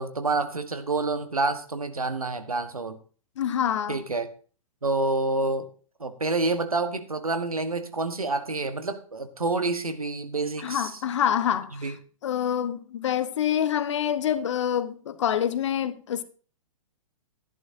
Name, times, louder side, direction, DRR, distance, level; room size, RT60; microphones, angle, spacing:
voice 1, 0.0-3.0 3.9-4.3 4.8-5.7 6.0-10.9 11.8-11.9, right 3 dB, 85° right, 1.4 m, -28 dB
voice 2, 3.4-4.0 10.6-11.9 12.2-16.2, left 9 dB, 55° left, 1.1 m, -26 dB
14.5 x 11.0 x 2.7 m
figure-of-eight pair, 115°, 18 cm